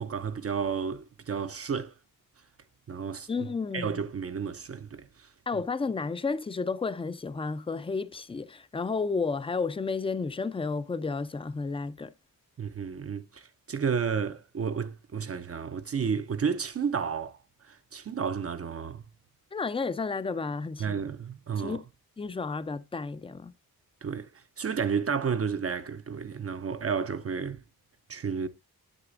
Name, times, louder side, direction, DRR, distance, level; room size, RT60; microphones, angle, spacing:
voice 1, 0.0-1.9 2.9-3.5 3.7-5.1 12.6-17.4 17.7-19.1 20.8-21.8 24.0-24.3 24.6-27.6 28.1-28.5, right 6 dB, 40° right, 0.5 m, -31 dB
voice 2, 3.3-4.0 5.5-12.1 19.5-21.0 21.6-21.8 22.2-23.5, left 4 dB, 15° left, 0.4 m, -32 dB
9.9 x 7.9 x 2.5 m
wide cardioid pair, 110°, 37 cm